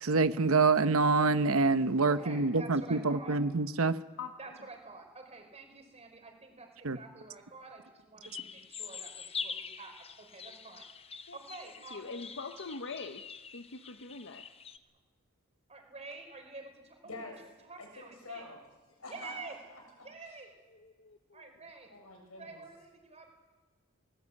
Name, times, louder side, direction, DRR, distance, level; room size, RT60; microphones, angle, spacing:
voice 1, 0.0-3.9 6.8-7.0, right 3 dB, 70° right, 12 dB, 0.9 m, -26 dB
voice 2, 2.0-3.4 4.4-10.9 11.3-12.2 15.7-18.5 19.1-19.6 20.0-20.5 21.3-21.9 22.3-23.3, right 3 dB, 30° right, 4 dB, 5.0 m, -48 dB
sound 1, 8.2-14.8, left 6 dB, 30° left, 0.9 m, -44 dB
voice 3, 11.9-13.2 13.5-14.4 20.8-21.4, left 4 dB, 60° left, 7 dB, 1.0 m, -43 dB
voice 4, 17.0-17.4 17.8-18.6 19.0-20.1 21.9-22.6, left 2 dB, 85° left, 3 dB, 6.8 m, -47 dB
21.0 x 19.5 x 8.6 m, 1.3 s
head